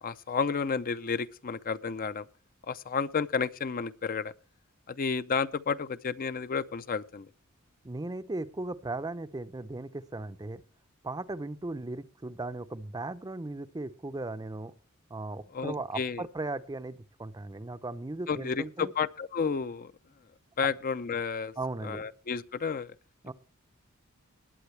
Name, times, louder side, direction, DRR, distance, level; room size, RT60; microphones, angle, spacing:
voice 1, 0.0-2.3 2.7-4.3 4.9-7.3 15.5-16.3 18.3-19.9 20.6-21.5 21.8-23.0, left 5 dB, 40° left, 0.5 m, -31 dB
voice 2, 7.8-10.6 11.0-14.7 15.1-18.9 21.6-22.1 23.2-23.3, right 2 dB, 20° right, 0.6 m, -37 dB
20.0 x 8.8 x 3.2 m
head